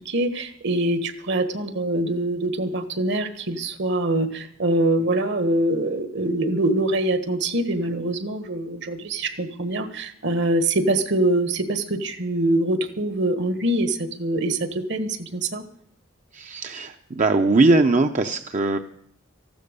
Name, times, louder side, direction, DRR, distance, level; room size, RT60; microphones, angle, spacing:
voice 1, 0.0-15.6, right 1 dB, 65° right, 11 dB, 1.4 m, -24 dB
voice 2, 16.3-18.8, right 2 dB, 40° right, 6 dB, 0.6 m, -20 dB
14.0 x 12.0 x 6.7 m, 0.70 s
head